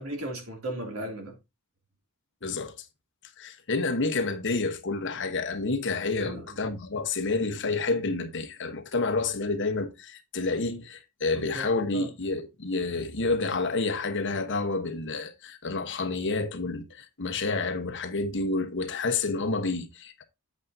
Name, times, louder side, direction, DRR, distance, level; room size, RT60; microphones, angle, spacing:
voice 1, 0.0-1.3 6.2-6.5 11.3-11.7 11.9-12.1, right 1 dB, 70° right, 2.8 m, -36 dB
voice 2, 2.4-2.7 3.4-20.3, left 3 dB, 55° left, 1.1 m, -29 dB
8.4 x 8.1 x 2.7 m
head